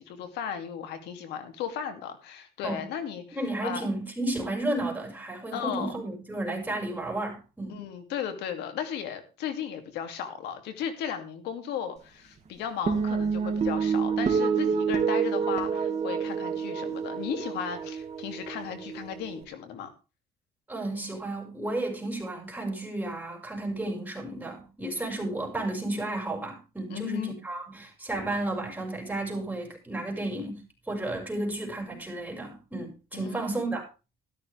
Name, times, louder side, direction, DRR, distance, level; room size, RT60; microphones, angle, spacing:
voice 1, 0.0-3.8 5.5-5.9 7.7-19.9 26.9-27.3 33.1-33.6, left 8 dB, 85° left, 2.7 m, -35 dB
voice 2, 3.4-7.8 20.7-30.6 30.9-33.9, right 2 dB, 10° right, 6.0 m, -32 dB
sound 1, 12.9-19.4, right 6 dB, 40° right, 2.6 m, -28 dB
13.0 x 13.0 x 3.5 m
cardioid pair, 110°, 17 cm